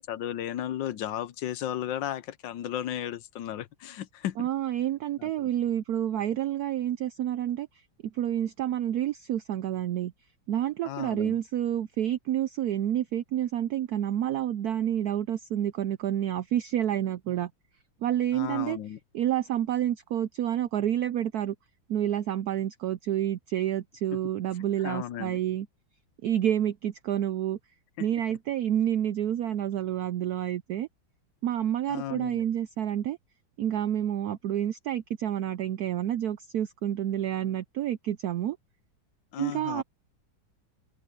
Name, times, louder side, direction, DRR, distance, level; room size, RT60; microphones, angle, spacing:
voice 1, 0.0-4.5 5.2-5.5 10.8-11.4 18.3-19.0 24.8-25.4 28.0-28.1 31.9-32.4 39.3-39.8, left 11 dB, 70° left, 1.3 m, -35 dB
voice 2, 4.4-7.7 8.0-10.1 10.5-17.5 18.0-18.8 19.1-21.5 21.9-25.7 26.2-27.6 28.0-30.9 31.4-33.2 33.6-38.6 39.4-39.8, right 11 dB, 80° right, 0.8 m, -29 dB
omnidirectional pair, 2.2 m